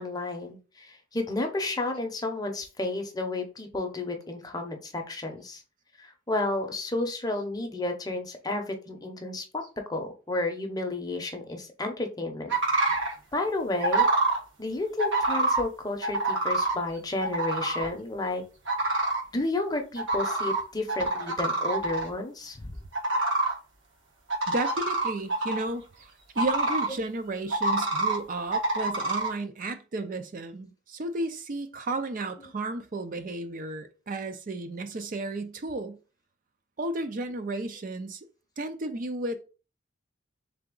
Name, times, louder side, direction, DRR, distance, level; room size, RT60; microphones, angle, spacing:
voice 1, 0.0-5.6 6.0-12.5 12.9-14.1 14.6-18.4 18.9-19.0 19.3-22.8, left 2 dB, 20° left, 0.7 m, -32 dB
sound 1, 12.5-13.1 13.8-14.4 15.0-15.6 16.0-16.7 17.2-17.9 18.7-19.2 20.0-20.6 20.9-22.1 22.9-23.5 24.3-25.6 26.4-26.9 27.5-28.2 28.5-29.3, right 2 dB, 70° right, 1.3 m, -26 dB
voice 2, 24.5-25.9 26.3-36.0 36.8-38.2 38.6-39.4, right 2 dB, 45° right, 0.4 m, -33 dB
3.8 x 3.4 x 3.8 m
head